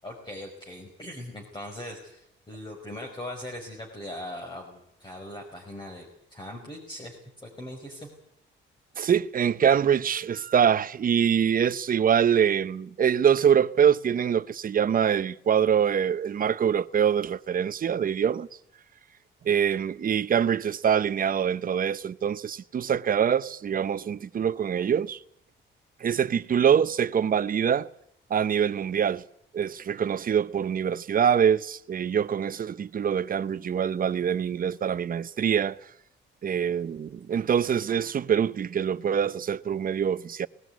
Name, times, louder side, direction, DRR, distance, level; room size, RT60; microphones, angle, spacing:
voice 1, 0.0-6.1 6.3-8.1, left 1 dB, 20° left, 5.4 m, -40 dB
voice 2, 9.0-18.5 19.4-25.2 26.0-27.9 28.3-29.2 29.5-35.8 36.4-40.5, right 8 dB, 45° right, 0.9 m, -24 dB
19.5 x 16.0 x 9.5 m
cardioid pair, 90°, 20 cm